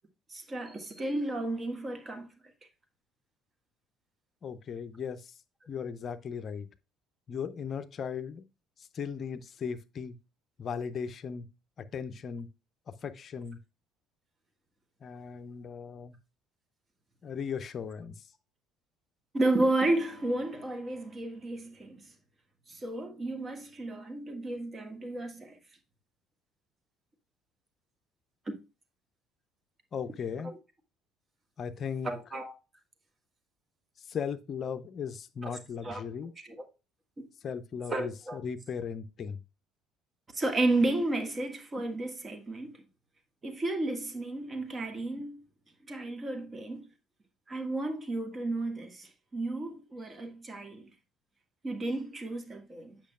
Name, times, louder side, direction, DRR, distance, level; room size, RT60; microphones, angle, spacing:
voice 1, 0.3-2.3 19.3-22.1 22.7-25.6 28.5-28.6 30.4-30.5 32.0-32.5 35.8-36.0 36.5-36.6 37.2-37.3 37.9-38.4 40.3-42.8 43.4-45.4 45.9-46.9 47.5-50.9 51.6-53.0, right 2 dB, 25° right, 1.6 m, -32 dB
voice 2, 4.4-5.3 5.7-6.7 7.3-8.4 8.8-10.2 10.6-11.5 11.8-12.5 12.9-13.6 15.0-16.2 17.2-18.3 29.9-30.5 31.6-32.1 34.0-36.3 37.4-39.4, left 6 dB, 40° left, 0.6 m, -37 dB
8.3 x 6.0 x 2.3 m
figure-of-eight pair, 55°, 0 cm